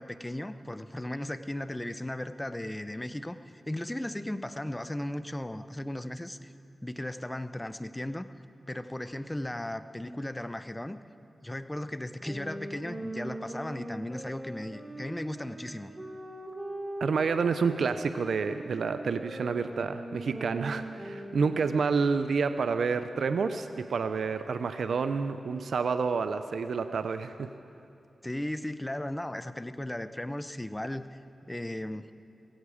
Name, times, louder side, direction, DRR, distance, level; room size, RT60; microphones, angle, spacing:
voice 1, 0.0-3.4 3.7-6.5 6.8-8.3 8.7-11.0 11.4-15.9 28.2-31.2 31.5-32.1, left 1 dB, 15° left, 12 dB, 0.7 m, -36 dB
sound 1, 12.2-21.9, right 1 dB, 25° right, 1.8 m, -41 dB
voice 2, 17.0-27.5, right 5 dB, 80° right, 10 dB, 0.5 m, -29 dB
17.0 x 15.5 x 4.9 m, 2.7 s
cardioid pair, 50°, 0 cm